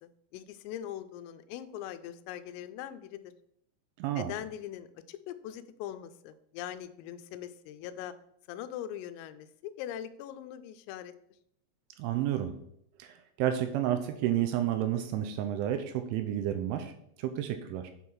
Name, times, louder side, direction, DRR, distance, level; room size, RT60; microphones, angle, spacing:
voice 1, 0.0-3.3 4.2-8.1 8.5-11.1, left 11 dB, 85° left, 11 dB, 3.2 m, -41 dB
voice 2, 4.0-4.3 12.0-12.5 13.0-16.9 17.2-17.9, right 11 dB, 85° right, 8 dB, 2.9 m, -31 dB
8.5 x 5.5 x 4.6 m, 0.72 s
omnidirectional pair, 5.9 m